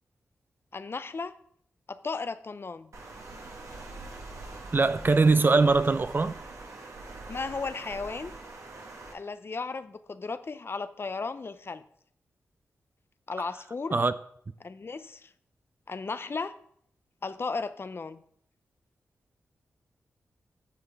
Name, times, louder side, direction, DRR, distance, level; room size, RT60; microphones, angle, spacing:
voice 1, 0.7-1.3 1.9-2.9 7.3-8.3 9.1-11.8 13.3-14.0 14.6-15.3 15.9-16.6 17.2-18.2, left 4 dB, 45° left, 0.5 m, -35 dB
Water, 2.9-9.1, right 2 dB, 65° right, 1.5 m, -43 dB
voice 2, 4.7-6.4 13.9-14.1, right 3 dB, 40° right, 0.5 m, -22 dB
9.2 x 6.8 x 3.5 m
cardioid pair, 45°, 5 cm